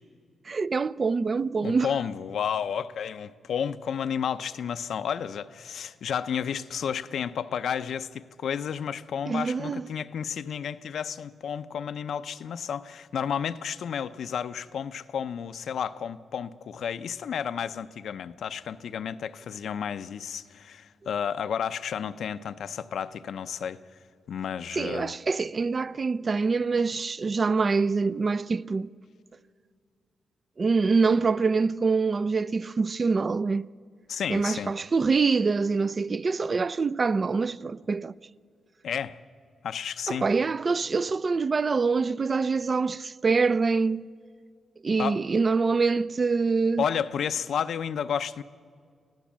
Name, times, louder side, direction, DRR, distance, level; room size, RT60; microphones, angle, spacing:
voice 1, 0.5-1.9 9.3-9.9 24.7-28.9 30.6-33.7 34.3-38.1 40.1-44.1 44.8-46.8, right 4 dB, 40° right, 0.4 m, -25 dB
voice 2, 1.6-23.8 24.3-25.1 34.1-34.7 38.8-39.2 39.6-40.3 45.0-45.2 46.8-48.4, left 8 dB, 75° left, 0.6 m, -32 dB
25.0 x 16.0 x 7.4 m
cardioid pair, 85°, 0 cm